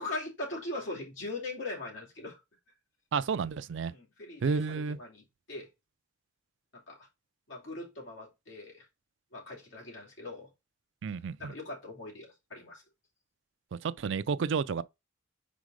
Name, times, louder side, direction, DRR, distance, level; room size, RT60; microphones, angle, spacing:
voice 1, 0.0-2.4 3.8-5.7 6.7-7.1 7.5-8.9 9.3-10.5 11.4-12.8, left 2 dB, 65° left, 2.7 m, -41 dB
voice 2, 3.1-3.9 4.4-5.0 11.0-11.5 13.7-14.8, right 5 dB, 60° right, 0.4 m, -31 dB
5.1 x 4.1 x 4.8 m
head